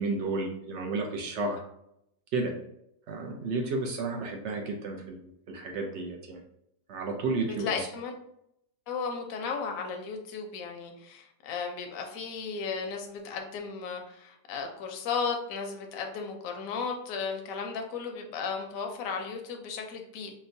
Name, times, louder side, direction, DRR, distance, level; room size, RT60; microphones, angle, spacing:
voice 1, 0.0-1.6 2.3-2.5 3.1-5.2 5.5-6.4 6.9-7.9, right 3 dB, 75° right, 1 dB, 0.6 m, -32 dB
voice 2, 7.4-8.1 8.9-20.3, left 5 dB, 65° left, 3 dB, 0.9 m, -35 dB
4.3 x 2.1 x 2.6 m, 0.76 s
omnidirectional pair, 1.8 m